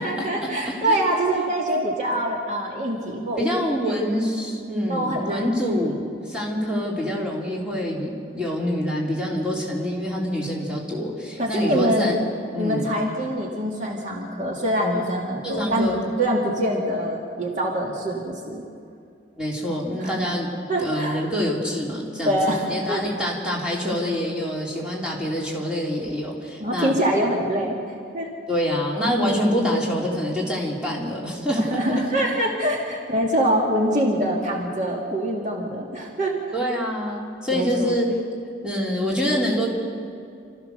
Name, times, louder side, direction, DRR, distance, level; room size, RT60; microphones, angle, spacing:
voice 1, 0.0-3.5 4.9-5.5 11.4-12.1 12.6-15.9 16.2-18.6 20.0-20.2 20.7-21.2 22.2-23.0 26.6-27.8 28.1-28.3 31.6-36.3 37.5-38.0, right 1 dB, 45° right, -1 dB, 2.2 m, -24 dB
voice 2, 3.4-12.2 12.5-13.0 15.4-16.1 19.4-20.5 20.8-26.9 28.5-31.8 36.5-38.1 38.6-39.7, equal, 5° right, -4 dB, 3.5 m, -26 dB
28.0 x 14.5 x 6.7 m, 2.4 s
head